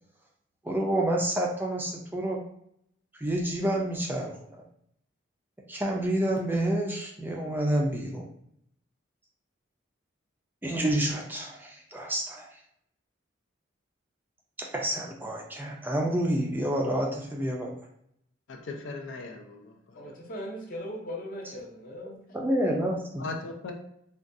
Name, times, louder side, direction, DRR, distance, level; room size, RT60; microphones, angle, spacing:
voice 1, 0.6-2.4 3.2-4.3 5.7-8.3 10.6-12.5 14.6-17.7 22.3-23.3, right 1 dB, 10° right, -1 dB, 0.3 m, -28 dB
voice 2, 18.5-19.7 23.2-23.7, left 3 dB, 80° left, 3 dB, 0.5 m, -38 dB
voice 3, 19.9-22.4, equal, 45° left, -1 dB, 0.7 m, -39 dB
3.7 x 2.2 x 2.5 m, 0.71 s
head